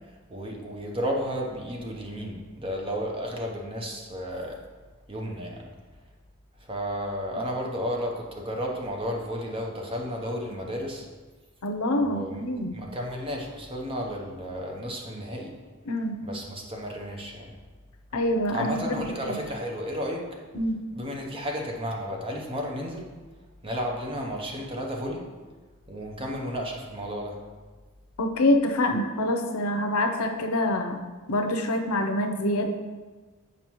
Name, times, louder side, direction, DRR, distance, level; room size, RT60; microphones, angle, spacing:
voice 1, 0.3-4.6 5.1-5.6 6.7-11.0 12.0-12.3 12.7-15.5 16.2-17.5 18.5-20.2 20.9-23.0 23.6-25.2 25.9-27.4, equal, 25° right, 0 dB, 0.8 m, -32 dB
voice 2, 11.6-12.7 15.9-16.2 18.1-19.4 20.5-20.8 28.2-31.0 31.3-32.7, left 1 dB, 85° left, 4 dB, 0.6 m, -26 dB
7.2 x 4.8 x 3.0 m, 1.3 s
head